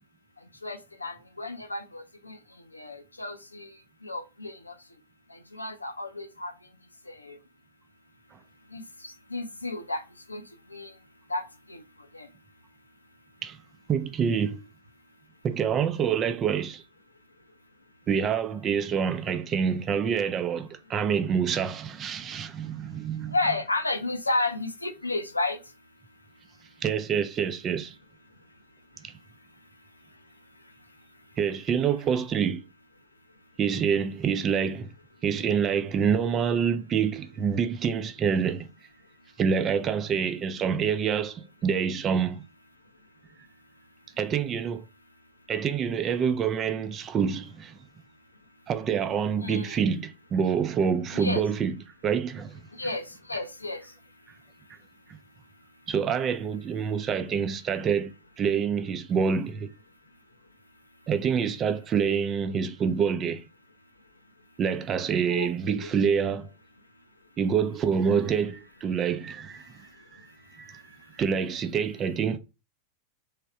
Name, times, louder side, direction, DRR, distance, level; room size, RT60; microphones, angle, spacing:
voice 1, 0.6-2.4 2.7-3.7 4.0-4.7 5.3-6.5 7.2-7.4 8.7-10.0 10.3-10.4 10.7-10.9 11.3-11.4 11.7-11.8 12.1-12.3 23.3-25.6 49.4-49.8 51.1-51.4 52.8-53.8 65.3-65.5 65.8-65.9, left 2 dB, 80° left, 0.6 m, -32 dB
voice 2, 13.9-14.6 15.4-16.8 18.1-23.4 26.8-28.0 29.0-29.1 31.4-32.7 33.6-34.9 35.2-38.7 39.4-42.4 44.2-44.9 45.5-47.8 48.7-52.6 55.1-55.2 55.9-59.7 61.1-63.4 64.6-66.5 67.4-69.9 70.6-70.8 71.1-72.4, right 7 dB, 25° right, 0.6 m, -27 dB
3.6 x 3.3 x 4.3 m
figure-of-eight pair, 90°, 0 cm